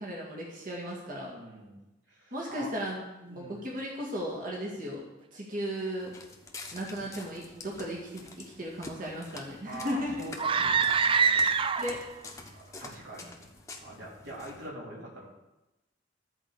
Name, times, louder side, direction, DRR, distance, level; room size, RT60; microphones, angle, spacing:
voice 1, 0.0-1.3 2.3-5.0 5.3-6.2 6.7-10.1 11.8-12.0, equal, 50° right, -4 dB, 1.9 m, -36 dB
voice 2, 1.3-1.8 2.1-2.7 3.3-3.6 4.7-4.8 7.0-7.1 9.6-11.5 12.4-13.5 13.8-15.3, right 1 dB, 70° right, -6 dB, 4.1 m, -44 dB
Walk footsteps, 6.0-14.7, left 3 dB, 15° left, 1.1 m, -48 dB
sound 1, 10.4-12.1, right 5 dB, 30° right, 0.4 m, -25 dB
14.0 x 4.8 x 6.8 m, 1.0 s
head